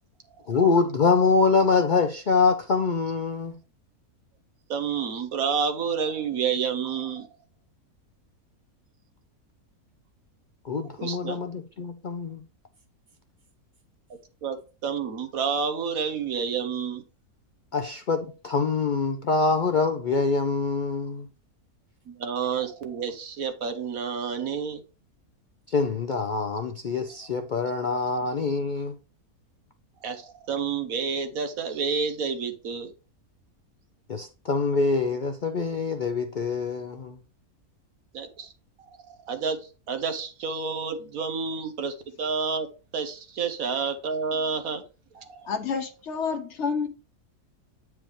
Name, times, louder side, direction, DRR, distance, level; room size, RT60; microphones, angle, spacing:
voice 1, 0.5-3.6 10.6-12.4 17.7-21.3 25.7-28.9 34.1-37.2, left 4 dB, 90° left, 0.4 m, -25 dB
voice 2, 4.7-7.3 11.0-11.4 14.4-17.0 22.1-24.8 30.0-32.9 38.1-38.5 39.2-39.6 39.9-42.7 42.9-44.8 45.1-45.5, right 6 dB, 65° right, 1.4 m, -29 dB
voice 3, 45.4-46.9, left 5 dB, 60° left, 0.8 m, -29 dB
9.0 x 4.7 x 3.2 m
omnidirectional pair, 1.6 m